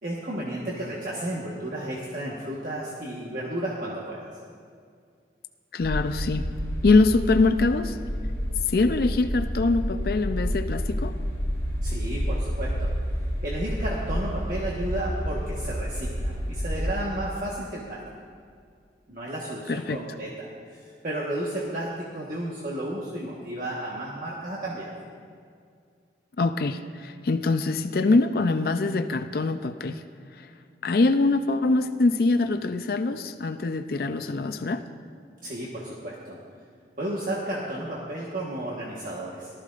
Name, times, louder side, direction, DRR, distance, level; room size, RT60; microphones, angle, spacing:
voice 1, 0.0-4.3 11.8-12.9 13.4-18.0 19.1-24.9 35.4-36.4 37.0-39.5, right 1 dB, 50° right, -5 dB, 1.3 m, -33 dB
voice 2, 5.7-6.5 6.8-8.0 8.7-11.1 19.7-20.0 26.4-30.0 30.4-30.5 30.8-34.8, left 3 dB, 55° left, 9 dB, 0.4 m, -23 dB
sound 1, 5.8-17.0, equal, 20° left, 3.4 m, -29 dB
18.5 x 13.0 x 2.5 m, 2.2 s
head